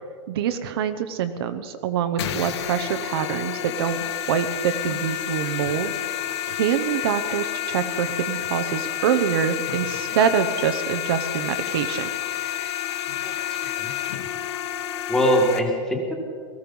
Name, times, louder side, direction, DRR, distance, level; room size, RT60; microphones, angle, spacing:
voice 1, 0.3-4.0 4.3-5.9 6.5-12.1, right 8 dB, 50° right, 9 dB, 0.8 m, -25 dB
sound 1, 2.2-15.6, left 11 dB, 60° left, 1.3 m, -29 dB
voice 2, 13.2-13.9 15.1-16.2, equal, 5° left, 1 dB, 1.8 m, -23 dB
18.5 x 14.5 x 5.4 m, 2.1 s
supercardioid pair, 165°, 16 cm